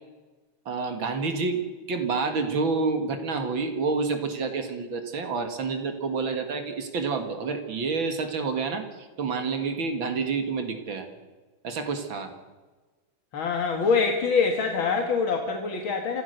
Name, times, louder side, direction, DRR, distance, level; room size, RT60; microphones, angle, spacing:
voice 1, 0.7-1.6 1.9-11.1 11.6-12.3, right 4 dB, 70° right, 7 dB, 2.7 m, -28 dB
voice 2, 13.3-16.2, left 5 dB, 75° left, 4 dB, 2.5 m, -24 dB
26.5 x 17.0 x 6.7 m, 1.3 s
omnidirectional pair, 2.2 m